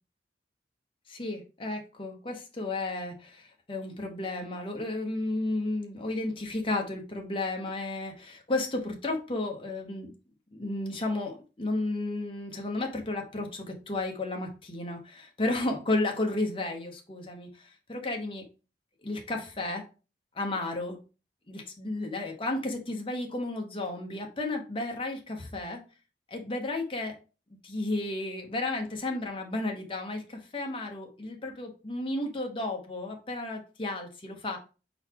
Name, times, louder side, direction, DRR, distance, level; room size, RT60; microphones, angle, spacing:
voice 1, 1.1-10.1 10.5-18.4 19.0-19.8 20.3-21.0 21.5-25.8 26.3-27.2 27.6-34.6, left 2 dB, 30° left, 2 dB, 0.9 m, -33 dB
4.6 x 4.0 x 2.9 m, 0.33 s
head